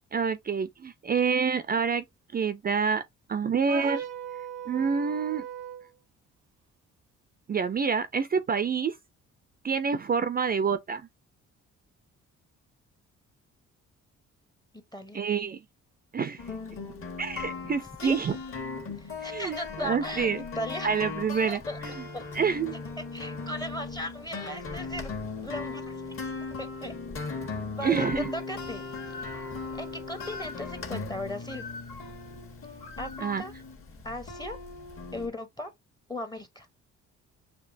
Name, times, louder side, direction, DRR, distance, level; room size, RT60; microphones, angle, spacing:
voice 1, 0.1-2.0 2.3-3.0 3.3-4.0 4.7-5.4 7.5-9.0 9.6-11.0 15.1-15.6 16.1-16.4 17.2-18.4 19.2-20.4 20.8-22.1 22.3-22.8 27.8-28.3 33.2-33.4, right 6 dB, 30° right, 0.4 m, -27 dB
sound 1, 3.7-5.9, right 10 dB, 90° right, 0.7 m, -37 dB
voice 2, 14.9-15.2 18.0-18.2 18.9-20.3 20.5-20.9 21.5-21.8 22.1-22.2 23.0-25.1 25.4-26.0 26.6-26.9 27.8-28.8 29.7-31.7 33.0-33.5 34.0-34.6 35.1-35.7 36.1-36.7, left 1 dB, 15° left, 0.8 m, -37 dB
sound 2, 16.4-35.3, left 4 dB, 45° left, 1.5 m, -38 dB
Bird, 27.8-33.7, left 4 dB, 80° left, 1.9 m, -45 dB
6.7 x 2.7 x 2.5 m
cardioid pair, 90°, 30 cm